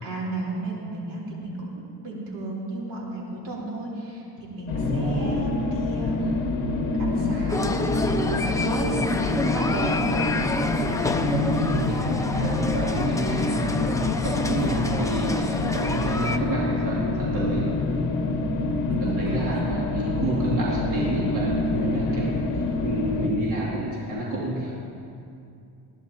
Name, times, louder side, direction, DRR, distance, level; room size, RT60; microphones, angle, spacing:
voice 1, 0.0-6.3 7.0-10.3 14.3-15.3 18.9-19.6 22.1-22.6, right 2 dB, 70° right, -4 dB, 4.0 m, -34 dB
sound 1, 4.7-23.3, left 2 dB, 45° left, 1.5 m, -26 dB
voice 2, 4.7-5.3 11.2-17.7 19.0-24.7, right 1 dB, 50° right, -7 dB, 2.8 m, -29 dB
sound 2, 7.5-16.4, left 2 dB, 10° left, 0.5 m, -29 dB
20.5 x 15.5 x 2.9 m, 2.6 s
cardioid pair, 145°, 42 cm